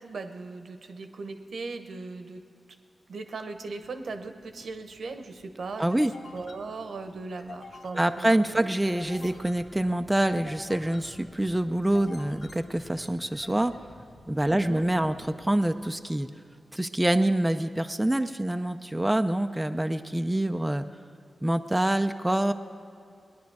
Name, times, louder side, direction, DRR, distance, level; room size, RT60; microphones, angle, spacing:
voice 1, 0.0-2.4 3.1-6.0 6.3-8.6 14.5-14.9, right 3 dB, 75° right, 7 dB, 0.9 m, -38 dB
sound 1, 3.6-16.3, left 2 dB, 75° left, 1.6 m, -49 dB
voice 2, 5.8-6.1 7.9-13.7 14.3-16.3 16.7-20.8 21.4-22.5, right 1 dB, 10° right, 7 dB, 0.4 m, -26 dB
19.0 x 10.5 x 4.7 m, 2.5 s
cardioid pair, 75°, 0 cm